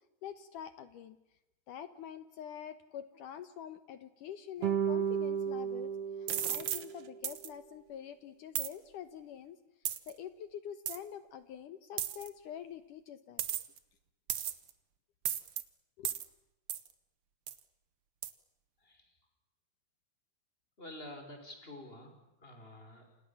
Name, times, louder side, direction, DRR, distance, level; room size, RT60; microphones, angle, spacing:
voice 1, 0.2-1.2 1.7-5.9 6.2-9.6 10.1-13.4 16.0-16.1, left 9 dB, 65° left, 12 dB, 2.3 m, -46 dB
sound 1, 4.6-7.2, right 8 dB, 60° right, 1.6 m, -34 dB
sound 2, 6.3-6.8 7.2-7.5 8.5-8.7 9.8-10.1 10.9-11.0 12.0-12.3 13.4-13.8 14.3-14.7 15.2-15.6 16.0-16.3 16.7-16.9 17.5-17.6 18.2-18.3, right 10 dB, 85° right, 1.2 m, -35 dB
voice 2, 20.8-22.2 22.4-23.1, left 1 dB, 15° left, 5 dB, 5.5 m, -48 dB
29.5 x 27.0 x 7.2 m, 0.93 s
omnidirectional pair, 4.5 m